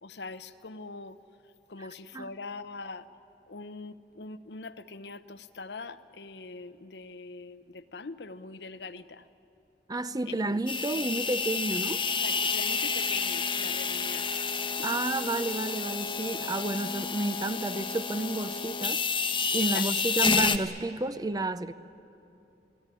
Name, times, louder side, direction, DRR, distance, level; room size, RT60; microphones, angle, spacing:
voice 1, 0.0-1.2 1.7-3.1 3.5-9.2 10.3-10.6 12.1-14.3 14.6-14.9 19.6-19.9, left 4 dB, 70° left, 12 dB, 0.8 m, -42 dB
voice 2, 9.9-12.0 14.8-19.0 19.5-21.7, right 2 dB, 20° right, 13 dB, 0.5 m, -31 dB
sound 1, 10.7-20.6, left 5 dB, 30° left, 1.0 m, -30 dB
27.0 x 17.5 x 10.0 m, 2.8 s
head